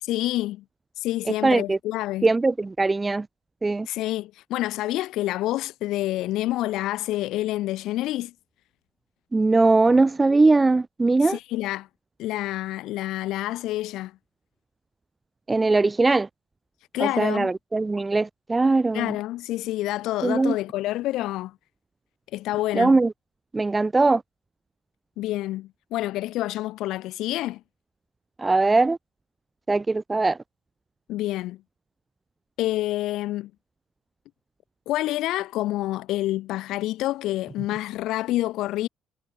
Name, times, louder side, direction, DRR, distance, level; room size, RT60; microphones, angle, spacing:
voice 1, 0.0-0.6 1.0-2.3 3.9-8.3 11.2-11.9 12.2-14.1 16.9-17.5 18.9-21.5 22.3-23.0 25.2-27.6 31.1-31.6 32.6-33.5 34.9-38.9, left 16 dB, 75° left, 2.6 m, -28 dB
voice 2, 1.4-1.8 2.2-3.3 3.6-3.9 9.3-11.4 15.5-16.3 17.0-19.1 20.2-20.5 22.7-23.1 23.5-24.2 28.4-29.0 29.7-30.4, right 3 dB, 15° right, 0.9 m, -20 dB
cardioid pair, 110°, 0 cm